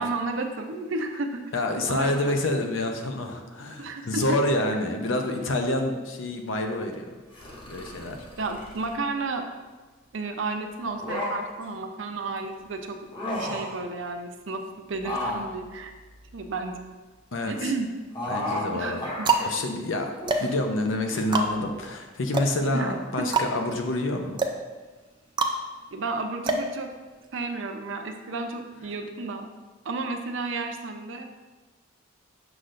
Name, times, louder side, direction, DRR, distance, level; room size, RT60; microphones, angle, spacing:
voice 1, 0.0-1.4 1.9-2.5 3.8-4.4 8.4-9.5 10.1-13.0 13.4-14.6 14.9-15.9 16.3-16.8 17.5-17.9 18.7-19.5 22.7-23.3 25.9-26.9 27.3-29.5 29.8-31.2, right 3 dB, 75° right, 5 dB, 0.6 m, -32 dB
voice 2, 1.5-7.1 7.7-8.2 17.3-17.7 18.3-20.1 20.4-24.4, left 1 dB, 85° left, 4 dB, 0.7 m, -28 dB
sound 1, 7.3-9.0 10.8-11.6 13.0-13.8 15.0-16.8 18.1-18.7 19.0-19.5 20.2-20.5 21.1-21.2, left 1 dB, 25° left, 1.1 m, -34 dB
sound 2, 17.3-18.0 18.7-27.4, right 3 dB, 25° right, 0.4 m, -29 dB
6.5 x 5.9 x 2.5 m, 1.3 s
head